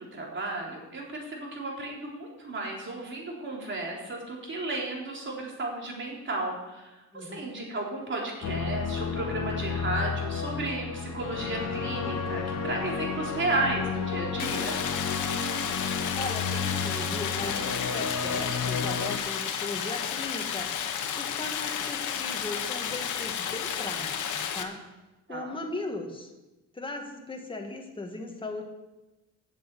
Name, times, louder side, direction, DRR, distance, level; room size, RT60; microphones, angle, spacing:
voice 1, 0.0-14.8 25.3-25.5, right 2 dB, 40° right, -1 dB, 3.7 m, -33 dB
voice 2, 7.1-7.5 16.2-24.8 25.3-26.3 26.7-28.6, left 2 dB, 15° left, 2 dB, 2.0 m, -38 dB
sound 1, 8.4-19.2, left 5 dB, 55° left, 1.3 m, -32 dB
Stream, 14.4-24.6, left 8 dB, 75° left, 1.2 m, -32 dB
7.9 x 7.3 x 8.4 m, 1.1 s
cardioid pair, 90°, 30 cm